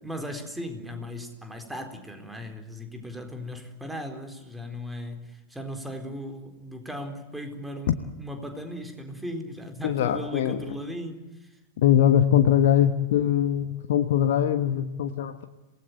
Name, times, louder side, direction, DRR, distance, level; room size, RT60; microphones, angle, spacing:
voice 1, 0.0-11.5, equal, 5° right, 5 dB, 4.1 m, -37 dB
voice 2, 9.8-10.6 11.8-15.4, left 10 dB, 55° left, 8 dB, 1.3 m, -22 dB
27.5 x 19.0 x 8.0 m, 1.1 s
figure-of-eight pair, 90°, 0 cm